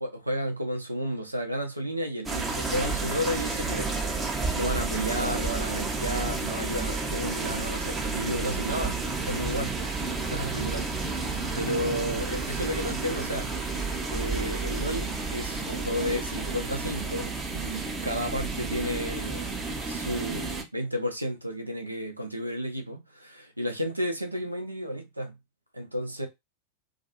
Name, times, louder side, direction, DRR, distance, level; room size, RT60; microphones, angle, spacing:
voice 1, 0.0-3.9 4.6-9.8 10.3-11.3 11.5-13.5 14.1-19.5 19.9-25.4 25.7-26.3, equal, 85° right, 0.6 m, -32 dB
sound 1, 2.3-20.6, right 3 dB, 15° right, 0.6 m, -31 dB
2.4 x 2.1 x 2.8 m
figure-of-eight pair, 90°, 0 cm